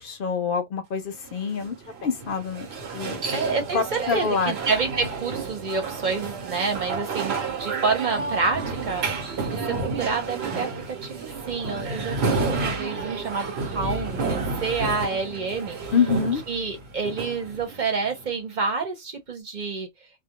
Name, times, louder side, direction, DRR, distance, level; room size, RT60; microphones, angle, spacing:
voice 1, 0.0-1.8 2.0-2.7 2.9-3.2 3.7-4.5 15.9-16.4, left 5 dB, 65° left, 0.7 m, -25 dB
sound 1, 1.2-18.3, right 4 dB, 85° right, 1.1 m, -31 dB
voice 2, 3.3-3.8 4.1-15.9 16.5-19.9, right 4 dB, 50° right, 0.9 m, -28 dB
2.3 x 2.1 x 2.8 m
omnidirectional pair, 1.0 m